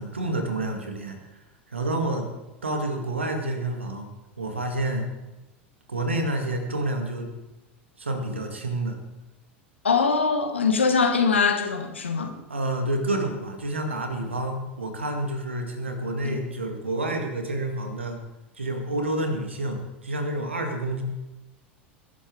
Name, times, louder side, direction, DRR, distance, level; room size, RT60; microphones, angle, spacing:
voice 1, 0.0-1.4 1.7-2.3 2.6-4.1 4.4-5.1 5.9-7.3 8.0-9.0 12.5-18.2 18.6-21.0, right 1 dB, 80° right, 4 dB, 2.4 m, -29 dB
voice 2, 9.8-12.3 16.2-16.4, left 5 dB, 75° left, 6 dB, 1.7 m, -22 dB
21.5 x 11.5 x 3.6 m, 1.1 s
figure-of-eight pair, 80°, 6 cm